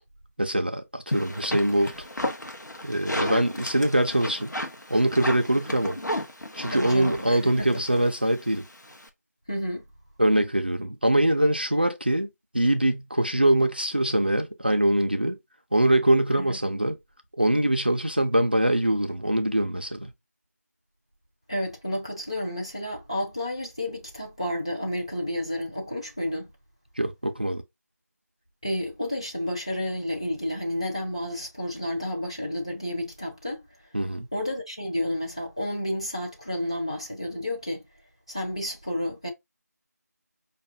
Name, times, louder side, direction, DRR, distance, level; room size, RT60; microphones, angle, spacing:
voice 1, 0.4-1.9 2.8-4.6 4.9-6.0 6.5-8.7 10.2-12.3 12.5-15.4 15.7-17.0 17.4-20.1 27.0-27.6 33.9-34.3, right 1 dB, 35° right, 0.3 m, -23 dB
sound 1, 1.1-9.1, left 1 dB, 80° left, 0.9 m, -34 dB
voice 2, 6.7-7.7 9.5-9.8 16.3-16.6 21.5-26.5 28.6-33.6 34.3-37.8 38.3-39.3, left 1 dB, 20° left, 0.5 m, -31 dB
5.1 x 2.3 x 2.5 m
figure-of-eight pair, 170°, 9 cm